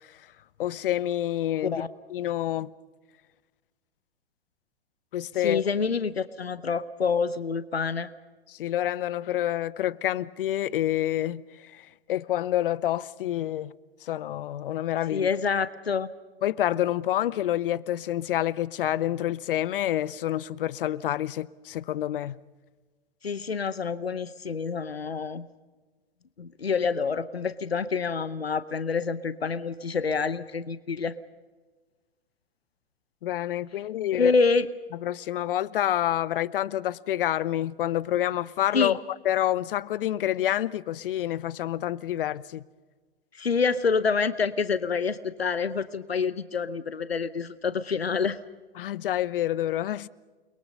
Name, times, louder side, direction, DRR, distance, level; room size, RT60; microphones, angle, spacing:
voice 1, 0.6-1.8 2.1-2.7 5.1-5.6 8.5-13.7 14.0-15.3 16.4-22.4 33.2-34.3 35.0-39.0 39.2-42.6 48.8-50.1, left 12 dB, 60° left, 0.8 m, -28 dB
voice 2, 5.4-8.1 15.1-16.1 23.2-25.5 26.4-31.2 34.1-34.7 38.7-39.0 43.3-48.4, left 5 dB, 90° left, 0.8 m, -27 dB
29.5 x 22.0 x 5.6 m
figure-of-eight pair, 105°, 30 cm